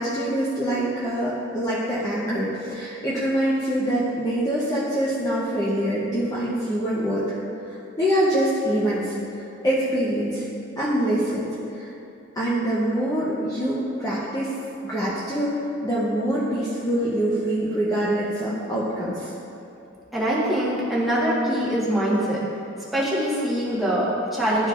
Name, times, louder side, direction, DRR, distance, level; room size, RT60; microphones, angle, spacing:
voice 1, 0.0-7.4 8.0-10.4 10.8-11.5 11.8-11.9 12.4-14.5 14.8-15.6 15.8-19.3, right 1 dB, 20° left, -9 dB, 0.8 m, -24 dB
voice 2, 20.1-22.4 22.9-24.7, equal, ahead, -8 dB, 1.4 m, -23 dB
11.5 x 4.4 x 2.5 m, 2.7 s
head